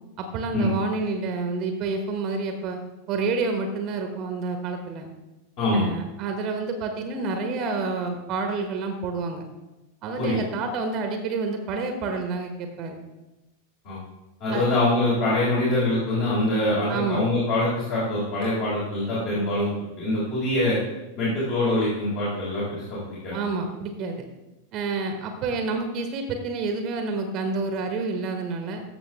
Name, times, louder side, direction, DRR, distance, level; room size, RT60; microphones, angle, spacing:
voice 1, 0.2-2.8 3.1-5.1 5.7-9.4 10.0-13.0 14.5-14.6 16.9-17.2 23.3-24.2 24.7-28.8, right 4 dB, 35° right, 6 dB, 1.2 m, -28 dB
voice 2, 5.6-5.9 10.2-10.4 13.8-14.0 14.4-20.8 21.2-23.4, left 1 dB, 45° left, -8 dB, 3.8 m, -24 dB
14.5 x 6.9 x 3.5 m, 1.0 s
figure-of-eight pair, 90°, 0 cm